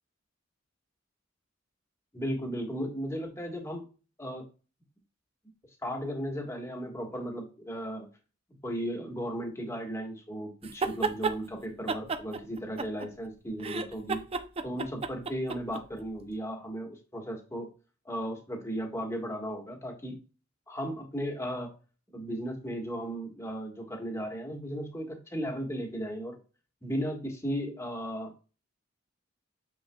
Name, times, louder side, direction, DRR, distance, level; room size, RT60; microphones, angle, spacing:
voice 1, 2.1-3.8 4.2-4.4 5.8-8.1 8.6-14.2 14.6-17.7 18.0-20.2 20.7-21.7 22.1-26.4 26.8-28.3, equal, 15° left, 1 dB, 1.6 m, -35 dB
sound 1, 10.6-11.4 11.9-13.3 13.6-15.8, right 4 dB, 30° right, 0.5 m, -32 dB
6.9 x 6.0 x 2.3 m, 0.34 s
head